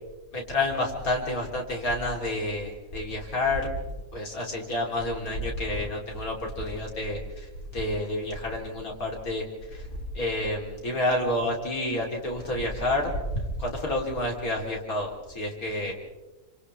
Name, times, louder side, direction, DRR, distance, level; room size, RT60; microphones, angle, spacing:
voice 1, 0.3-3.7 4.1-7.5 7.7-9.4 9.7-9.9 10.1-15.9, left 1 dB, 70° left, 0 dB, 3.9 m, -29 dB
29.0 x 26.5 x 3.4 m, 1.1 s
omnidirectional pair, 1.6 m